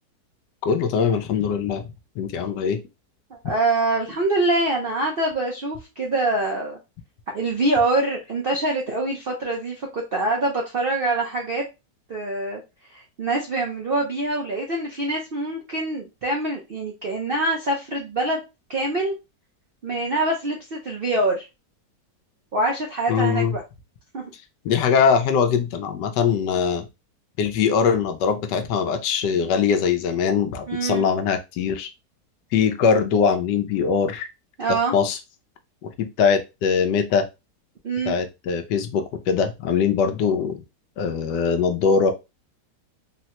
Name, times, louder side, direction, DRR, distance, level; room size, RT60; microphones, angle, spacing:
voice 1, 0.6-1.8 2.2-2.8 23.1-23.5 24.6-26.8 27.4-31.9 32.5-34.3 34.9-35.2 35.8-37.2 38.1-40.6 41.0-42.1, left 6 dB, 85° left, 8 dB, 1.2 m, -22 dB
voice 2, 3.4-6.8 7.3-11.6 12.1-12.6 12.9-18.4 18.7-19.1 19.8-21.4 22.5-23.6 24.1-24.2 30.7-31.0 34.6-35.0 37.8-38.2, right 2 dB, 70° right, 0 dB, 0.5 m, -24 dB
3.9 x 2.1 x 2.8 m, 0.25 s
omnidirectional pair, 1.9 m